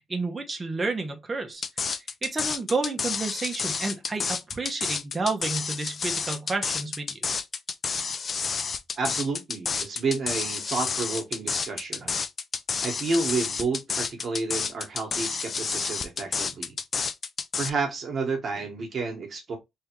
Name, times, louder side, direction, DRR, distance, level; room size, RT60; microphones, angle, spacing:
voice 1, 0.1-1.6 2.2-7.2, right 3 dB, 25° right, 1.1 m, -30 dB
sound 1, 1.6-17.7, left 5 dB, 45° left, 0.5 m, -30 dB
voice 2, 9.0-12.2 12.8-16.8 17.6-19.6, right 3 dB, 45° right, 1.5 m, -30 dB
3.5 x 3.4 x 3.1 m
cardioid pair, 90°, 0 cm